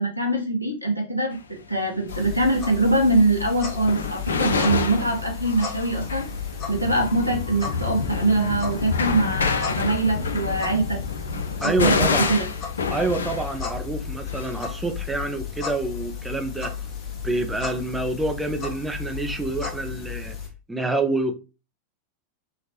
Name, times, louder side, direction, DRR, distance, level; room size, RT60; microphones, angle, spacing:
voice 1, 0.0-1.4 1.7-6.2 6.7-11.0 11.6-12.5, right 2 dB, 90° right, 0.8 m, -23 dB
sound 1, 1.3-1.4 2.0-17.3 17.5-19.6, left 4 dB, 70° left, 0.4 m, -29 dB
sound 2, 2.1-20.5, left 7 dB, 35° left, 0.8 m, -34 dB
voice 2, 11.6-12.4 12.9-16.7 17.2-20.4 20.7-21.4, right 2 dB, 10° right, 0.4 m, -27 dB
3.2 x 2.1 x 2.7 m
figure-of-eight pair, 90°, 0 cm